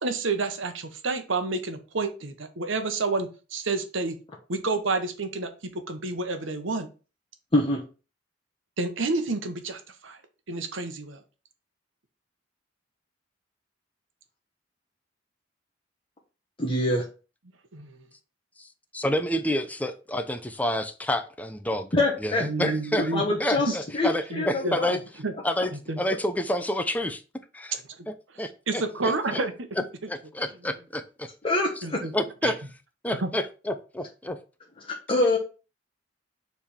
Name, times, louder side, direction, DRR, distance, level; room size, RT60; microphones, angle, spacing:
voice 1, 0.0-4.2 4.5-6.9 8.8-10.2 10.5-11.2 17.7-18.0 22.4-23.2 23.7-23.8 24.3-25.3 25.9-26.0 28.0-28.1 28.7-29.5 31.8-32.1 32.4-32.5 33.2-33.3, right 3 dB, 85° right, 1.1 m, -29 dB
voice 2, 16.6-17.0 21.9-22.4 23.1-24.9 31.4-32.0 34.8-35.4, left 2 dB, 30° left, 1.2 m, -25 dB
voice 3, 18.9-21.9 22.2-23.1 23.4-25.0 25.4-25.7 26.0-27.2 27.5-27.7 28.1-29.4 30.1-31.3 32.1-32.6 33.0-34.4 35.1-35.4, left 1 dB, 10° left, 0.6 m, -29 dB
6.9 x 3.5 x 4.4 m
head